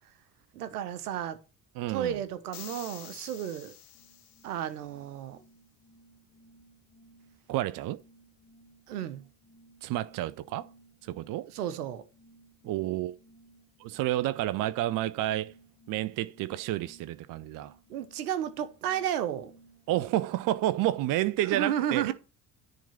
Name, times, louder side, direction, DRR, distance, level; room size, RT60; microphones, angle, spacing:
voice 1, 0.5-1.4 1.9-3.7 4.4-5.4 8.9-9.2 11.5-12.1 17.9-19.5 21.4-22.1, right 10 dB, 75° right, 1.2 m, -32 dB
voice 2, 1.7-2.2 7.5-8.0 9.8-10.7 11.0-11.5 12.6-13.2 13.8-15.5 15.9-17.8 19.9-22.1, right 14 dB, 45° right, 0.7 m, -30 dB
sound 1, 2.5-4.8, left 11 dB, 70° left, 1.3 m, -48 dB
sound 2, 3.9-20.8, right 2 dB, 25° left, 2.5 m, -59 dB
10.5 x 3.8 x 7.1 m
figure-of-eight pair, 55°, 47 cm